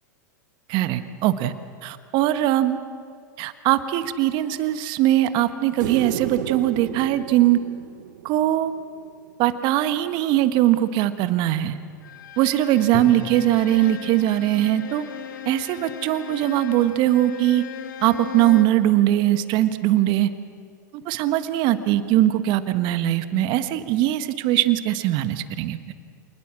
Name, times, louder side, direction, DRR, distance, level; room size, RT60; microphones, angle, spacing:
voice 1, 0.7-1.5 1.8-2.8 3.4-7.6 8.2-8.7 9.4-11.8 12.4-15.1 15.4-17.6 18.0-20.3 21.0-25.8, right 13 dB, 50° right, 11 dB, 1.5 m, -21 dB
sound 1, 5.8-9.1 11.6-11.7, right 12 dB, 70° right, 0.9 m, -33 dB
Bowed string instrument, 12.0-18.9, left 8 dB, 80° left, 1.8 m, -37 dB
Drum, 12.9-16.9, left 4 dB, 45° left, 3.6 m, -40 dB
27.0 x 20.0 x 7.6 m, 2.1 s
hypercardioid pair, 100°, 10 cm